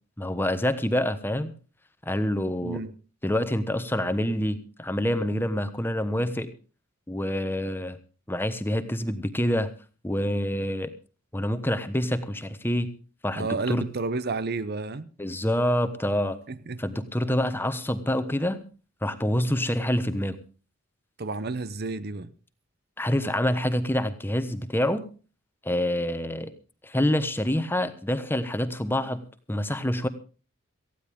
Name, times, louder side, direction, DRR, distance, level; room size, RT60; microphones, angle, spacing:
voice 1, 0.2-1.5 2.1-2.8 3.2-6.5 7.1-8.0 8.3-9.7 10.0-10.9 11.3-12.9 13.2-13.8 15.2-16.4 16.8-18.6 19.0-20.4 23.0-25.0 25.6-26.5 26.8-29.2 29.5-30.1, left 1 dB, 10° left, 1.1 m, -26 dB
voice 2, 2.6-2.9 13.4-15.1 16.5-16.8 21.2-22.3, right 3 dB, 50° right, 0.7 m, -31 dB
18.5 x 15.0 x 3.6 m
head